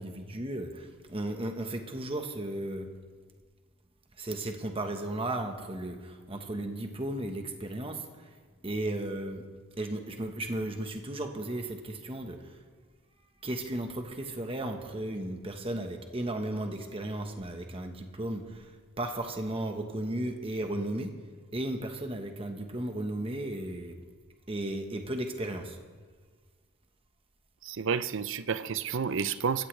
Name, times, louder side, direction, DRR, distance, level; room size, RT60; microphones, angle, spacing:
voice 1, 0.0-2.9 4.2-8.4 8.6-9.4 9.8-12.6 13.4-18.7 19.0-21.1 21.5-23.9 24.5-25.8, right 1 dB, 25° right, 4 dB, 1.2 m, -35 dB
voice 2, 27.6-29.7, right 6 dB, 60° right, 14 dB, 0.5 m, -30 dB
22.0 x 15.0 x 3.3 m, 1.5 s
head